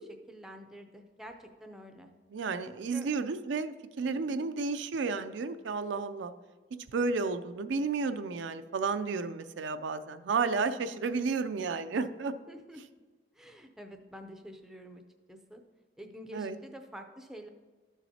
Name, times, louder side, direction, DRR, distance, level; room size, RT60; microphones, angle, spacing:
voice 1, 0.3-2.1 2.7-3.1 4.1-4.5 12.5-12.8 13.3-15.0 15.3-15.6 16.0-17.5, equal, ahead, 4 dB, 0.5 m, -48 dB
voice 2, 2.3-6.3 6.9-12.3 16.3-16.6, right 4 dB, 80° right, 10 dB, 0.4 m, -32 dB
12.5 x 7.1 x 2.8 m, 1.3 s
head